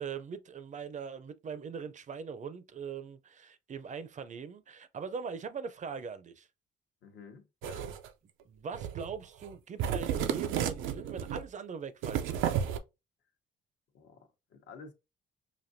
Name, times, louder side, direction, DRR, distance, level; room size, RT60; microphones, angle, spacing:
voice 1, 0.0-6.5 8.5-12.5, right 6 dB, 40° right, 0.5 m, -41 dB
voice 2, 7.0-7.9 13.9-14.9, left 5 dB, 65° left, 0.9 m, -51 dB
sound 1, 7.6-8.1 8.7-9.1 9.4-9.5 9.8-11.4 12.0-12.8, right 9 dB, 90° right, 0.5 m, -32 dB
5.1 x 2.6 x 2.6 m
cardioid pair, 90°, 20 cm